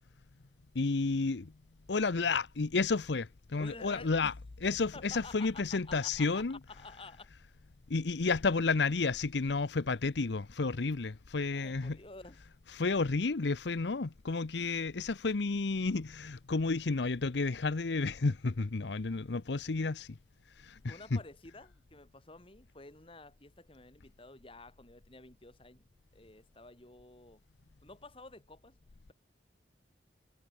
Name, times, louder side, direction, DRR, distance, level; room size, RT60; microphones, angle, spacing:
voice 1, 0.7-1.5 1.9-4.3 4.6-6.6 7.9-12.0 12.7-20.1 20.6-21.2, left 3 dB, 75° left, 0.8 m, -31 dB
voice 2, 3.6-4.3 4.9-7.3 11.5-12.4 20.9-25.8 26.1-27.4 27.8-28.7, left 3 dB, 30° left, 2.8 m, -51 dB
head